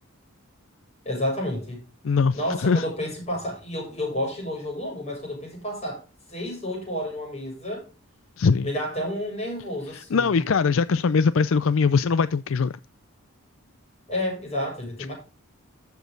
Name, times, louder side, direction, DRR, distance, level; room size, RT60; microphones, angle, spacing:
voice 1, 1.0-1.8 2.3-6.0 6.3-7.9 8.6-10.4 14.1-15.1, left 1 dB, 30° left, 7.2 m, -30 dB
voice 2, 2.0-2.8 8.4-8.7 9.9-12.7, left 5 dB, 65° left, 0.4 m, -21 dB
13.0 x 7.2 x 3.9 m
head